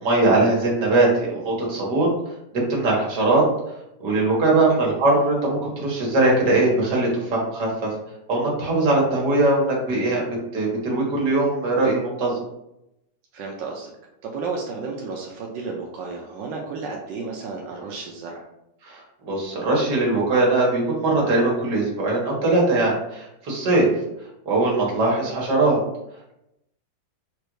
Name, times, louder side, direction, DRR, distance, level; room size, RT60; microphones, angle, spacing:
voice 1, 0.0-2.1 2.5-3.4 4.0-7.9 8.3-12.4 18.8-23.9 24.5-25.8, right 2 dB, 65° right, -3 dB, 2.0 m, -21 dB
voice 2, 13.3-13.9 14.2-18.4, right 4 dB, 90° right, -1 dB, 1.4 m, -32 dB
4.5 x 2.5 x 4.6 m, 0.86 s
omnidirectional pair, 1.9 m